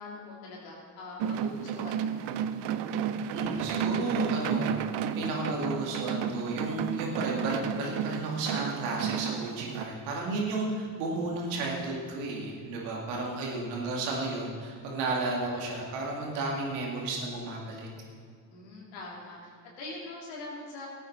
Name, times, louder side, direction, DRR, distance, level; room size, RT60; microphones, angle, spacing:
voice 1, 0.0-2.2 18.5-20.9, left 2 dB, 80° left, -3 dB, 3.3 m, -43 dB
sound 1, 1.2-9.8, right 8 dB, 60° right, 0.7 m, -32 dB
voice 2, 3.3-17.9, right 2 dB, 85° right, -1 dB, 2.3 m, -33 dB
17.5 x 9.0 x 4.2 m, 2.2 s
hypercardioid pair, 50°, 47 cm